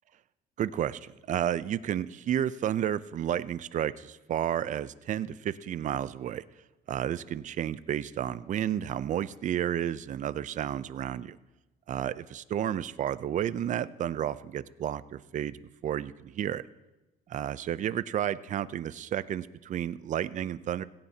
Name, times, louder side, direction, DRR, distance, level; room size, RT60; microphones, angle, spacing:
voice 1, 0.6-6.4 6.9-11.4 11.9-15.6 15.8-16.6 17.3-20.8, right 10 dB, 45° right, 15 dB, 0.5 m, -31 dB
17.0 x 16.5 x 2.9 m, 1.1 s
cardioid pair, 110°, 17 cm